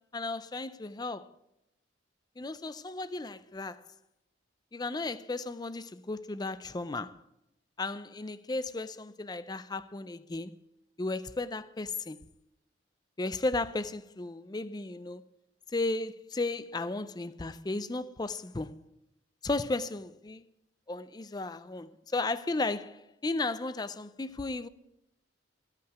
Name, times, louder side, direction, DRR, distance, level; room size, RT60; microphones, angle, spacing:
voice 1, 0.1-1.3 2.4-3.9 4.7-7.2 7.8-10.5 11.0-12.2 13.2-15.2 15.7-18.8 19.4-20.5 20.9-24.7, left 2 dB, 20° left, 0.4 m, -34 dB
15.0 x 5.7 x 8.8 m
head